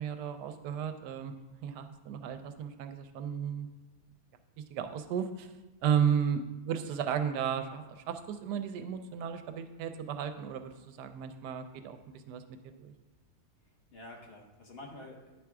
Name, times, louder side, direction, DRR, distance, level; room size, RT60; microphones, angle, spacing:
voice 1, 0.0-3.7 4.7-5.5 5.8-12.0 12.3-12.4 12.8-12.9, right 8 dB, 85° right, 8 dB, 1.2 m, -34 dB
voice 2, 13.6-15.4, left 1 dB, 45° left, 1 dB, 1.1 m, -48 dB
10.0 x 3.5 x 4.7 m, 1.1 s
omnidirectional pair, 1.7 m